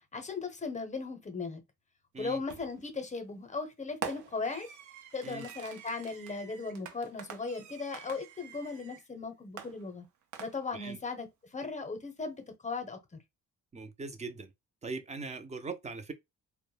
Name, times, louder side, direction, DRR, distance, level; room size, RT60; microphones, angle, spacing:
voice 1, 0.1-1.6 2.2-4.7 5.1-10.0 10.4-13.0, left 4 dB, 25° left, 0.7 m, -37 dB
Fireworks, 2.5-2.9 4.0-9.1 9.6-10.9, right 8 dB, 75° right, 0.6 m, -45 dB
voice 2, 13.7-14.5 14.8-16.1, right 4 dB, 25° right, 0.4 m, -40 dB
2.1 x 2.1 x 3.2 m
cardioid pair, 90°, 30 cm